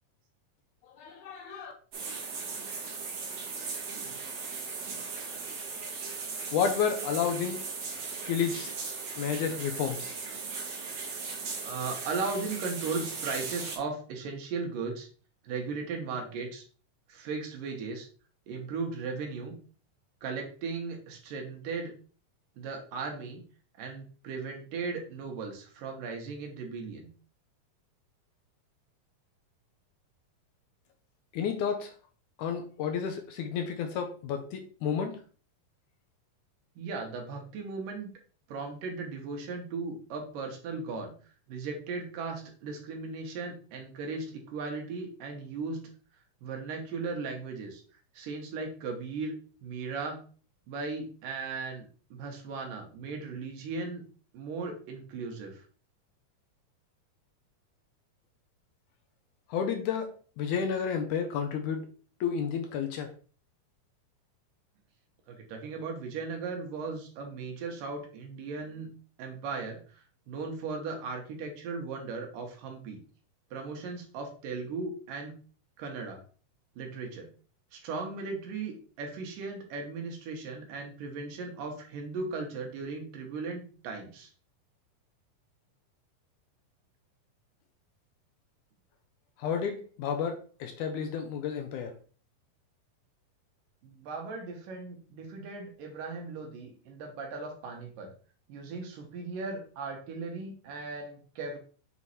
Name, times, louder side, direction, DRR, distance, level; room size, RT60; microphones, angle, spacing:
voice 1, 1.0-1.7 6.5-7.6 8.3-8.7 9.2-10.1 31.3-31.9 32.4-35.2 59.5-60.1 60.4-61.9 62.2-63.1 89.4-91.9, left 7 dB, 75° left, 4 dB, 2.1 m, -31 dB
sound 1, 1.9-13.8, right 4 dB, 55° right, 2.5 m, -38 dB
voice 2, 11.6-15.1 15.4-16.6 17.1-18.1 18.5-19.5 20.2-21.9 22.6-23.4 23.8-27.1 36.8-38.1 38.5-41.1 41.5-45.9 46.4-47.8 48.1-49.3 49.6-50.2 50.7-54.0 54.3-55.6 65.3-68.9 69.2-73.0 73.5-75.4 75.8-76.2 76.8-77.3 77.7-84.3 93.8-98.1 98.5-101.6, right 4 dB, 80° right, 2 dB, 2.8 m, -37 dB
7.2 x 3.1 x 4.2 m, 0.40 s
omnidirectional pair, 3.9 m